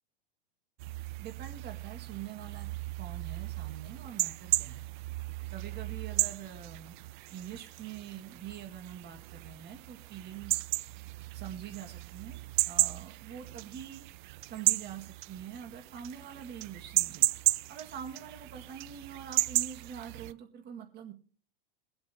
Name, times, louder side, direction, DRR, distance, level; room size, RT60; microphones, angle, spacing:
sound 1, 0.8-20.3, right 20 dB, 55° right, 0.4 m, -34 dB
voice 1, 1.2-2.7 3.0-4.9 5.5-7.0 7.3-10.6 11.3-12.4 12.7-14.1 14.5-17.3 17.7-21.1, right 8 dB, 35° right, 4 dB, 1.9 m, -44 dB
23.5 x 7.9 x 2.9 m, 0.40 s
hypercardioid pair, 105°, 29 cm